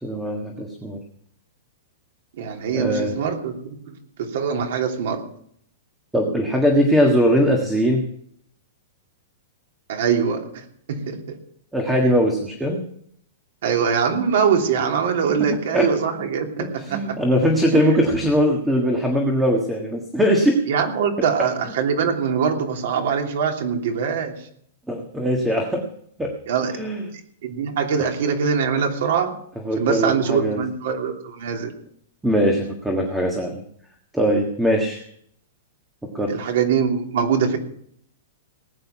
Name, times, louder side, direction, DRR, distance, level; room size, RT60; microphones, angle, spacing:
voice 1, 0.0-1.0 2.7-3.1 6.1-8.0 11.7-12.8 15.7-15.9 16.6-20.6 21.2-21.3 24.9-25.8 26.2-26.3 26.7-27.1 28.0-28.1 29.6-30.6 32.2-33.6 34.1-35.0 36.1-36.3, equal, 5° right, 2 dB, 1.5 m, -21 dB
voice 2, 2.4-3.6 3.9-5.2 9.9-10.4 10.9-11.4 13.6-17.2 20.7-24.3 26.5-26.8 27.4-29.3 29.8-31.7 36.3-37.6, right 6 dB, 55° right, 3 dB, 3.1 m, -23 dB
19.5 x 9.4 x 5.9 m, 0.65 s
supercardioid pair, 175°, 0 cm